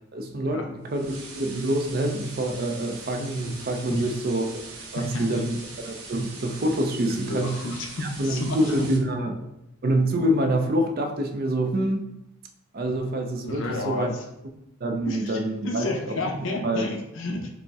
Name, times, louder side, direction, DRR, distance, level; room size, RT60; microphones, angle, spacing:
voice 1, 0.1-4.6 4.9-7.6 8.0-9.3 9.8-12.0 12.7-14.1 14.8-16.2 16.6-16.9, right 1 dB, 45° right, 5 dB, 0.5 m, -26 dB
sound 1, 0.9-9.0, right 3 dB, 75° right, 0.8 m, -42 dB
voice 2, 4.9-5.4 7.1-8.9 13.4-14.2 15.0-17.5, left 2 dB, 60° left, 2 dB, 0.6 m, -31 dB
5.2 x 2.1 x 3.5 m, 0.88 s
head